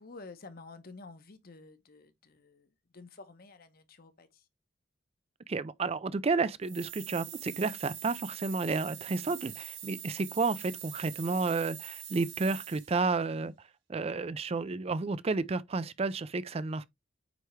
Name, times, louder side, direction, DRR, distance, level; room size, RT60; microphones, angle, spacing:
voice 1, 0.0-4.5, left 3 dB, 50° left, 1.0 m, -51 dB
voice 2, 5.5-13.5 13.9-16.8, right 4 dB, 30° right, 0.4 m, -31 dB
sound 1, 6.6-13.1, right 10 dB, 65° right, 2.6 m, -44 dB
9.1 x 3.4 x 3.2 m
head